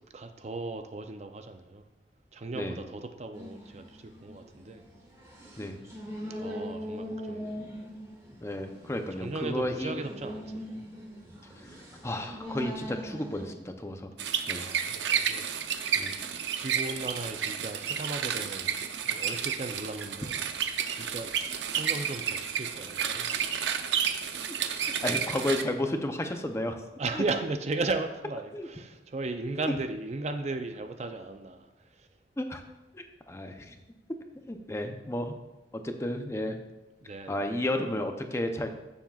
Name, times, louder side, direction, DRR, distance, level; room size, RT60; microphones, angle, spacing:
voice 1, 0.1-1.8 2.3-4.8 6.4-7.6 9.2-10.8 14.6-15.5 16.5-18.7 19.0-20.4 20.9-21.3 21.7-23.7 27.0-32.1 37.0-37.5, right 3 dB, 40° right, 7 dB, 0.5 m, -36 dB
sound 1, 3.3-13.5, equal, 20° right, 2.0 m, -41 dB
voice 2, 8.4-10.0 12.0-14.1 14.5-14.6 16.0-16.1 24.4-24.5 25.0-26.8 27.1-27.2 28.5-28.7 29.6-29.7 32.4-32.6 32.9-33.7 34.5-35.4 35.7-36.6 37.3-38.7, left 1 dB, 15° left, 5 dB, 0.6 m, -32 dB
sound 2, 14.2-25.6, right 8 dB, 85° right, 0.6 m, -31 dB
15.0 x 7.2 x 2.4 m, 1.0 s
head